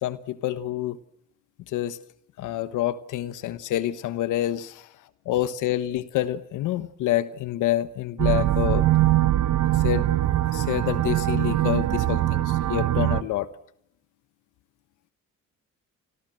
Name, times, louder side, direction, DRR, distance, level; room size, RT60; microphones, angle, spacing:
voice 1, 0.0-1.0 1.7-2.0 2.4-4.9 5.2-8.8 9.7-10.1 10.5-13.5, left 13 dB, 90° left, 14 dB, 1.2 m, -27 dB
sound 1, 8.2-13.2, right 14 dB, 70° right, 1.2 m, -22 dB
29.5 x 25.5 x 7.7 m, 0.73 s
cardioid pair, 90°, 30 cm